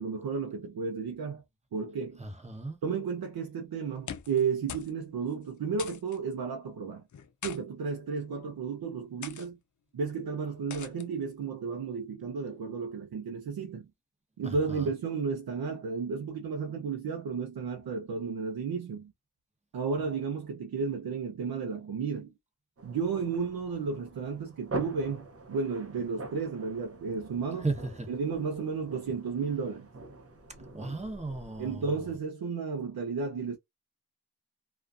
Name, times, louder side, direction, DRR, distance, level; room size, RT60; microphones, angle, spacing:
voice 1, 0.0-1.4 1.7-2.2 2.8-7.0 7.4-9.6 9.9-13.9 14.4-19.1 19.7-22.3 22.8-27.7 28.1-29.9 31.6-33.6, right 5 dB, 85° right, 0.6 m, -33 dB
voice 2, 2.2-2.8 14.4-14.9 27.6-28.1 30.7-31.8, right 3 dB, 20° right, 1.0 m, -35 dB
sound 1, 3.9-4.4 4.7-5.0 5.2-5.3 5.8-6.2 7.1-7.6 8.4-8.6 9.2-9.5 10.7-11.1, left 8 dB, 55° left, 0.5 m, -42 dB
sound 2, 22.8-31.8, right 2 dB, 40° right, 0.7 m, -44 dB
2.3 x 2.3 x 2.4 m
cardioid pair, 40°, 36 cm